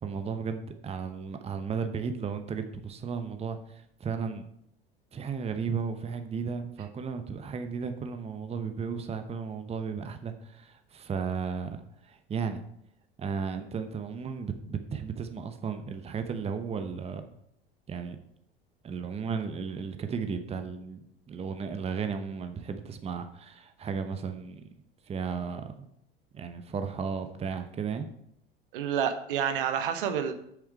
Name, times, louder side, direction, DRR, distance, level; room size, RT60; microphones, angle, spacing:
voice 1, 0.0-4.4 5.1-12.6 13.2-17.2 17.9-18.2 18.8-24.6 25.1-25.7 26.3-28.1, right 6 dB, 20° right, 8 dB, 0.9 m, -34 dB
voice 2, 28.7-30.3, right 8 dB, 60° right, 9 dB, 1.0 m, -28 dB
8.3 x 7.0 x 4.7 m, 0.73 s
figure-of-eight pair, 75°, 30 cm